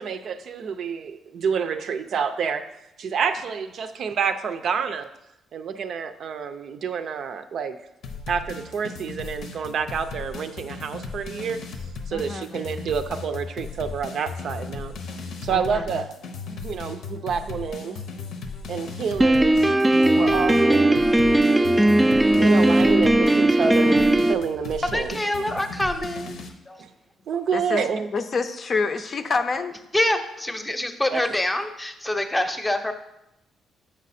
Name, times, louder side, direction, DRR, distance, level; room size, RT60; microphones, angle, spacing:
voice 1, 0.0-2.7 3.0-5.1 5.5-7.8 8.3-11.6 12.1-14.9 15.4-16.1 16.5-18.0 18.7-19.6 19.9-21.0 22.4-25.2 26.8-26.9 27.3-28.1 31.1-31.2, right 6 dB, 65° right, 8 dB, 0.5 m, -28 dB
sound 1, 8.0-26.5, left 4 dB, 80° left, 0.8 m, -36 dB
voice 2, 12.1-12.6 15.5-16.0 27.5-27.9 28.1-29.7, left 4 dB, 45° left, 8 dB, 0.5 m, -27 dB
Piano, 19.2-24.3, right 1 dB, 10° right, 0.3 m, -18 dB
voice 3, 24.9-26.4 26.7-26.8 29.9-32.9, left 1 dB, 15° left, 7 dB, 0.7 m, -25 dB
7.0 x 5.0 x 4.2 m, 0.86 s
cardioid pair, 90°, 0 cm